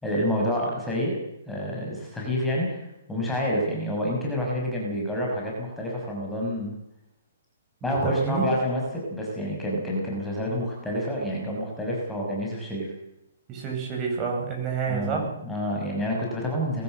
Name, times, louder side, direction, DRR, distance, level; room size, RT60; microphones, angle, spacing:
voice 1, 0.0-1.2 1.5-6.7 7.8-12.9 14.9-16.8, equal, 5° left, -3 dB, 6.1 m, -28 dB
voice 2, 7.9-8.5 13.5-15.3, right 6 dB, 25° right, 0 dB, 7.8 m, -28 dB
21.5 x 15.5 x 7.9 m, 0.86 s
hypercardioid pair, 150°, 0 cm